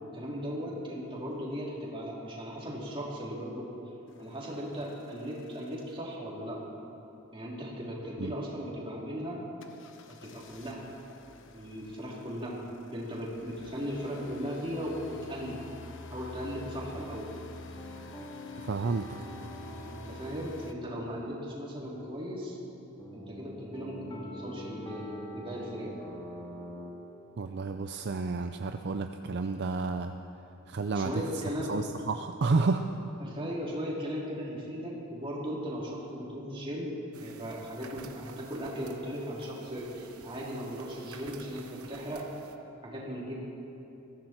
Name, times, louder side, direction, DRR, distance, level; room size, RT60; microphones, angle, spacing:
voice 1, 0.0-3.7 4.2-6.6 7.3-9.4 10.2-10.8 11.5-12.6 12.9-15.6 16.1-17.3 19.7-22.6 23.1-25.9 30.9-31.8 33.2-42.3 42.8-43.3, equal, 25° right, -5 dB, 3.4 m, -37 dB
sound 1, 4.1-6.1 9.6-20.7, left 2 dB, 60° left, 1.0 m, -49 dB
sound 2, 16.7-26.9, left 1 dB, 20° left, 2.2 m, -46 dB
voice 2, 18.6-19.2 27.4-30.1 30.7-31.2 31.7-32.8, right 3 dB, 50° right, 7 dB, 0.5 m, -30 dB
sound 3, 37.1-42.6, right 5 dB, 85° right, 1.0 m, -51 dB
21.0 x 15.0 x 4.5 m, 3.0 s
head